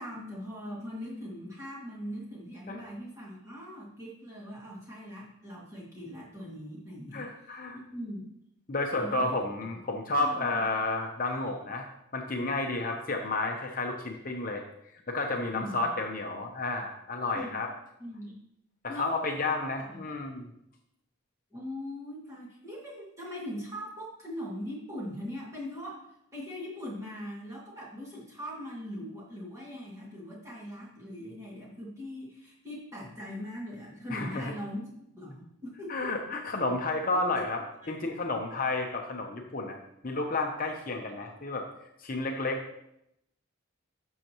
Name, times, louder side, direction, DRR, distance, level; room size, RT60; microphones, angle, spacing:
voice 1, 0.0-7.3 7.7-8.3 8.9-9.4 10.2-10.5 15.5-15.8 17.3-17.6 18.0-18.4 18.9-19.2 19.9-20.0 21.5-26.1 26.3-36.4 37.1-37.4 37.8-38.4, equal, 15° right, -5 dB, 2.2 m, -41 dB
voice 2, 7.1-7.8 8.7-11.9 12.1-14.6 14.9-17.7 18.8-20.5 34.1-34.5 35.9-37.6 37.9-39.8 40.0-41.7 42.0-42.6, left 2 dB, 40° left, 2 dB, 0.8 m, -31 dB
12.0 x 6.4 x 3.0 m, 0.80 s
head